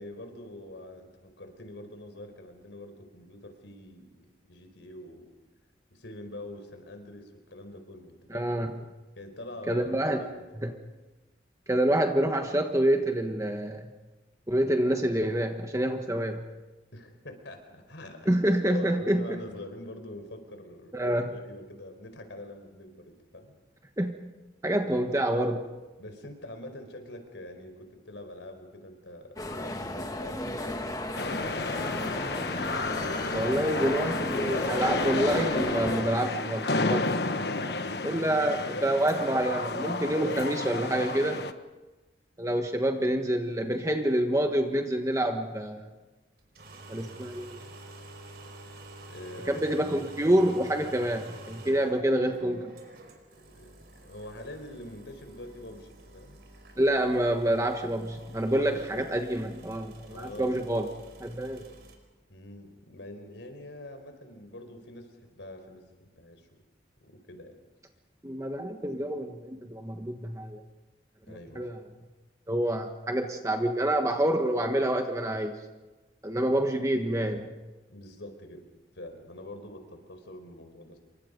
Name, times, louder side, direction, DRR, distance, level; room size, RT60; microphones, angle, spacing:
voice 1, 0.0-4.1 4.5-5.3 5.9-8.5 9.1-10.4 16.9-18.4 18.7-23.6 26.0-31.7 37.7-38.0 38.4-38.9 49.0-49.6 51.6-51.9 53.4-56.4 58.5-58.8 60.1-60.6 62.3-66.5 67.0-67.5 71.2-71.6 77.9-78.6 78.9-81.0, left 1 dB, 90° left, 6 dB, 4.7 m, -44 dB
voice 2, 8.3-8.7 9.7-10.2 10.6-10.7 11.7-13.9 14.5-16.4 18.3-19.4 20.9-21.3 24.0-24.1 24.6-25.6 33.3-37.0 38.0-41.4 42.4-45.9 46.9-47.6 49.5-52.7 56.8-60.9 61.2-61.6 68.2-70.6 71.3-71.8 72.5-75.5 76.2-77.5, right 1 dB, 15° right, 4 dB, 1.3 m, -27 dB
sound 1, 29.4-36.0, left 1 dB, 20° left, 1.6 m, -35 dB
sound 2, 31.1-41.5, left 3 dB, 65° left, 1.3 m, -31 dB
sound 3, 46.4-62.0, right 2 dB, 60° right, 4.9 m, -49 dB
28.5 x 24.0 x 5.3 m, 1.2 s
head